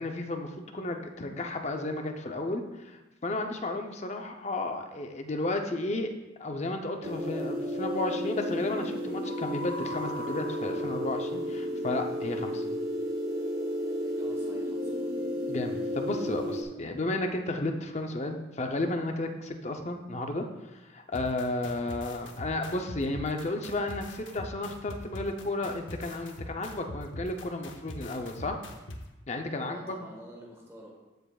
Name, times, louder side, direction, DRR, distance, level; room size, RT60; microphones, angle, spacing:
voice 1, 0.0-6.1 6.4-12.6 15.5-20.4 20.7-28.6 29.3-30.0, left 2 dB, 35° left, 4 dB, 0.6 m, -33 dB
sound 1, 7.0-16.6, equal, 50° right, 0.9 m, -32 dB
voice 2, 14.0-15.2 29.6-30.9, right 1 dB, 15° right, -2 dB, 1.5 m, -48 dB
sound 2, 21.1-29.0, left 1 dB, 85° left, 0.9 m, -42 dB
14.0 x 5.0 x 2.4 m, 1.0 s
head